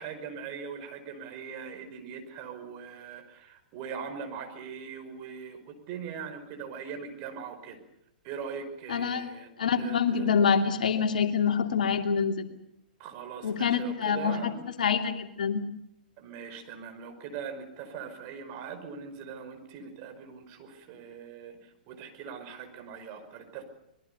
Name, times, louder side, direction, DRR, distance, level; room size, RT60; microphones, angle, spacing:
voice 1, 0.0-7.8 8.2-9.5 9.8-10.3 13.0-14.6 16.2-23.6, right 6 dB, 40° right, 6 dB, 5.3 m, -41 dB
voice 2, 8.9-9.3 9.6-12.5 13.4-14.5 14.8-15.6, left 6 dB, 65° left, 6 dB, 2.7 m, -26 dB
25.0 x 21.5 x 6.9 m, 0.80 s
figure-of-eight pair, 110°, 5 cm